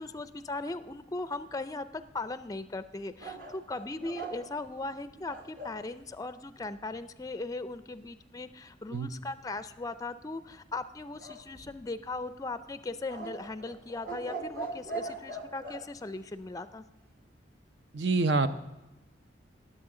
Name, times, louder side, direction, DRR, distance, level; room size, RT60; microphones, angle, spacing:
voice 1, 0.0-16.8, left 2 dB, 20° left, 12 dB, 0.4 m, -38 dB
sound 1, 3.2-5.8 11.2-12.1 13.1-15.8, right 3 dB, 50° right, 1.5 m, -41 dB
voice 2, 17.9-18.5, right 3 dB, 65° right, 11 dB, 0.6 m, -26 dB
16.5 x 7.6 x 3.7 m, 1.1 s
head